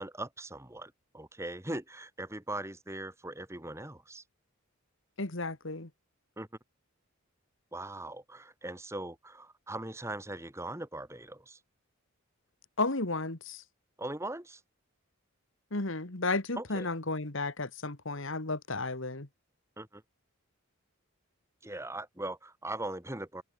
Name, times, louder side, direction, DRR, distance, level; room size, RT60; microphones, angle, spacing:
voice 1, 0.0-4.2 6.4-6.5 7.7-11.6 14.0-14.6 16.6-16.9 19.8-20.0 21.6-23.4, right 1 dB, 10° right, 1.9 m, -40 dB
voice 2, 5.2-5.9 12.8-13.6 15.7-19.3, left 3 dB, 60° left, 1.9 m, -33 dB
open air
head